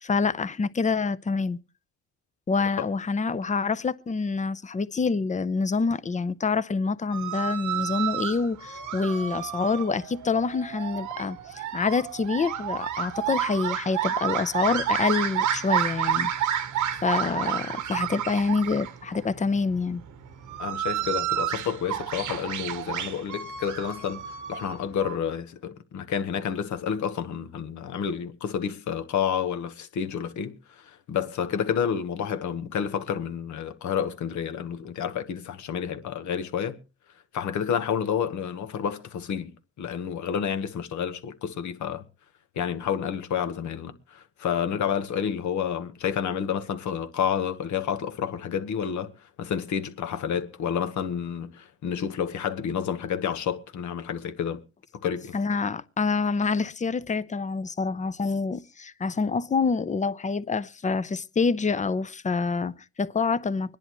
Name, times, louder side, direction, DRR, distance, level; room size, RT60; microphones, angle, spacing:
voice 1, 0.0-1.6 2.5-16.5 17.0-20.0 55.3-63.8, left 4 dB, 25° left, 0.6 m, -27 dB
sound 1, 7.1-25.2, right 9 dB, 80° right, 1.2 m, -30 dB
voice 2, 20.6-24.2 24.5-36.8 37.3-39.5 39.8-42.0 42.5-49.1 49.4-54.6 55.0-55.3, left 8 dB, 70° left, 1.3 m, -29 dB
25.0 x 10.5 x 3.1 m
cardioid pair, 90°, 30 cm